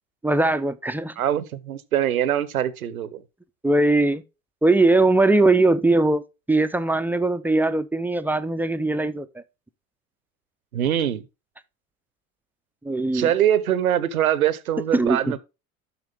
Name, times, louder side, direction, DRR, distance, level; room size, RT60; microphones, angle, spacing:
voice 1, 0.2-1.2 3.6-4.2 4.6-9.4 12.8-13.3 14.9-15.3, right 2 dB, 5° right, 0.5 m, -20 dB
voice 2, 1.2-3.2 10.7-11.2 13.1-15.4, right 10 dB, 85° right, 0.8 m, -23 dB
9.9 x 6.2 x 3.4 m
hypercardioid pair, 75°, 42 cm